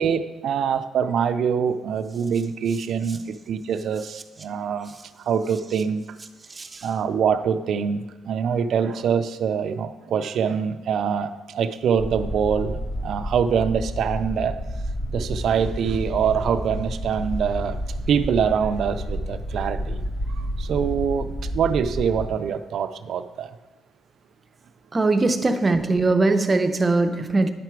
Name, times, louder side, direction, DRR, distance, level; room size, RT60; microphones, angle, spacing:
voice 1, 0.0-4.9 5.3-6.0 6.8-12.8 13.0-14.6 15.1-17.8 18.1-20.0 20.3-23.5, right 7 dB, 60° right, 9 dB, 0.4 m, -24 dB
voice 2, 6.5-6.9 24.9-27.5, right 3 dB, 25° right, 7 dB, 0.6 m, -21 dB
sound 1, 12.0-22.3, equal, 20° left, 1.2 m, -30 dB
10.5 x 5.8 x 4.6 m, 1.2 s
cardioid pair, 120°, 0 cm